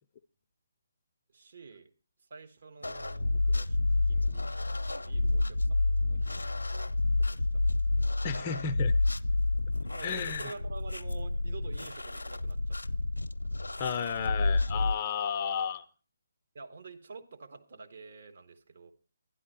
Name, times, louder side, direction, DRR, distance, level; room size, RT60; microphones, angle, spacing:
voice 1, 1.3-1.9 2.3-7.6 8.0-8.1 9.9-13.1 16.5-18.9, right 4 dB, 50° right, 4 dB, 1.4 m, -49 dB
sound 1, 2.8-14.9, left 2 dB, 75° left, 0.6 m, -29 dB
voice 2, 8.2-8.9 10.0-10.5 13.8-15.8, left 7 dB, 30° left, 10 dB, 0.6 m, -32 dB
12.0 x 10.5 x 4.5 m, 0.37 s
figure-of-eight pair, 140°, 0 cm